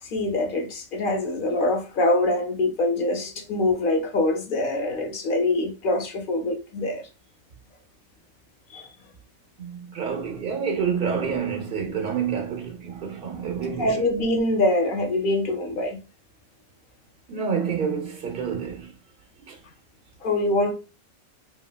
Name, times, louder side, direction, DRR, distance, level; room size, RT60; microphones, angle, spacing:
voice 1, 0.0-7.1 8.7-8.9 13.8-16.0 20.2-20.7, left 2 dB, 55° left, 0.6 m, -24 dB
voice 2, 9.6-14.0 17.3-18.9 19.4-19.6, right 6 dB, 55° right, 0.7 m, -28 dB
3.1 x 2.8 x 2.2 m
omnidirectional pair, 1.4 m